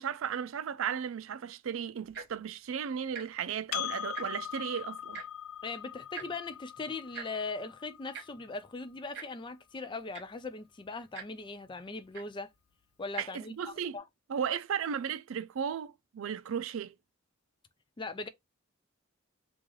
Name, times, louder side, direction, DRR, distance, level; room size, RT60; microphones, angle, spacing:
voice 1, 0.0-5.2 13.2-14.0 14.3-17.0, right 7 dB, 75° right, 0.4 m, -35 dB
Tick-tock, 2.0-2.4 3.1-3.3 3.6-3.7 4.0-4.5 5.1-5.3 6.1-6.3 7.1-7.3 8.1-8.2 9.1-9.3 9.8-9.9 10.1-10.4 11.1-11.3 12.1-12.3 13.0-13.2 14.0-14.1, right 7 dB, 55° right, 1.2 m, -42 dB
Percussion, 3.7-8.5, left 11 dB, 90° left, 0.4 m, -41 dB
voice 2, 5.6-12.5 13.0-13.5 13.9-14.0 18.0-18.3, left 3 dB, 25° left, 0.4 m, -39 dB
3.2 x 2.4 x 3.7 m
head